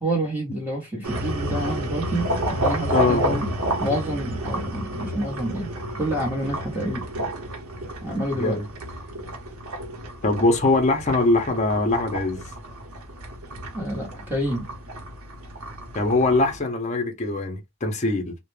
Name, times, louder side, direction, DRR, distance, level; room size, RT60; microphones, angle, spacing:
voice 1, 0.0-3.5 3.8-5.7 6.0-7.1 8.0-8.6 13.7-14.7, right 1 dB, 10° right, 1.0 m, -28 dB
sound 1, 1.0-16.6, right 1 dB, 80° right, 0.7 m, -30 dB
voice 2, 2.9-3.4 8.3-8.6 10.2-12.4 15.9-18.4, left 2 dB, 35° left, 0.6 m, -22 dB
2.3 x 2.1 x 3.1 m
head